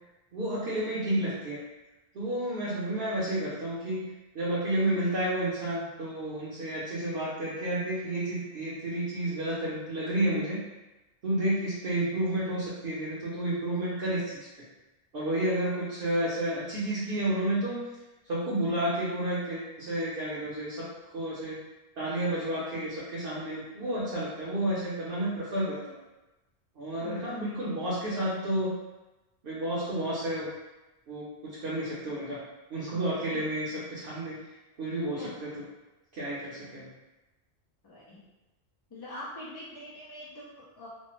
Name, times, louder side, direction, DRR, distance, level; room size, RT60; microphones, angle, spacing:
voice 1, 0.3-1.6 2.1-4.0 4.3-10.6 11.2-14.5 15.1-17.8 18.2-21.6 22.0-25.9 26.8-28.7 29.4-30.5 31.1-32.4 32.7-34.4 34.8-35.6 36.1-36.9, right 1 dB, 60° right, -9 dB, 0.9 m, -31 dB
voice 2, 27.0-27.4 35.2-35.3 37.8-38.2 38.9-40.9, left 1 dB, 35° left, -7 dB, 0.3 m, -43 dB
3.1 x 2.0 x 3.0 m, 1.1 s
omnidirectional pair, 1.1 m